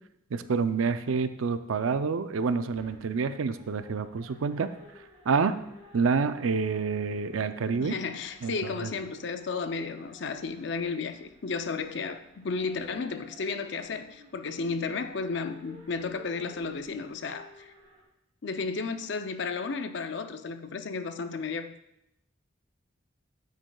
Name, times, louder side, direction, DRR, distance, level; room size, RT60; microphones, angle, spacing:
voice 1, 0.3-4.7 5.3-5.5 5.9-8.0 8.4-8.9, right 5 dB, 85° right, 0.5 m, -28 dB
sound 1, 2.6-18.0, left 1 dB, 30° right, 1.9 m, -55 dB
voice 2, 7.8-17.7 18.4-21.7, left 4 dB, 60° left, 0.5 m, -33 dB
9.2 x 8.2 x 2.3 m
head